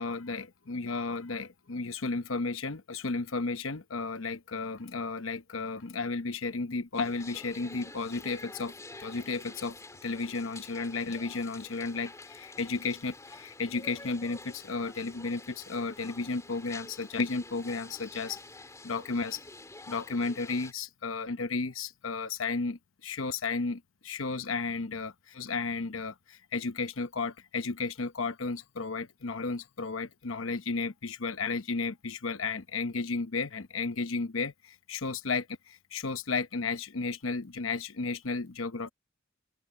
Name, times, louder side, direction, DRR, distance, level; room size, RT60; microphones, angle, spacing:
voice 1, 0.0-8.7 9.0-9.8 10.0-18.4 18.8-19.4 19.9-38.9, left 4 dB, 75° left, 0.9 m, -33 dB
sound 1, 6.9-20.7, left 2 dB, 15° left, 3.1 m, -48 dB
open air
head